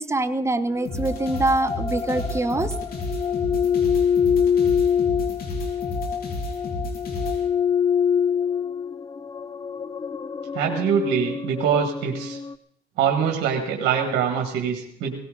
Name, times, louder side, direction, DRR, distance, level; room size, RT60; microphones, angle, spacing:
voice 1, 0.0-2.7, right 2 dB, 15° right, 11 dB, 1.0 m, -24 dB
sound 1, 0.7-12.5, left 7 dB, 25° left, 0.5 m, -25 dB
sound 2, 0.8-7.4, left 1 dB, 55° left, 3.8 m, -31 dB
voice 2, 10.5-12.4 13.0-15.1, right 7 dB, 80° right, 2 dB, 1.8 m, -24 dB
18.0 x 16.0 x 3.9 m, 0.74 s
supercardioid pair, 75°, 18 cm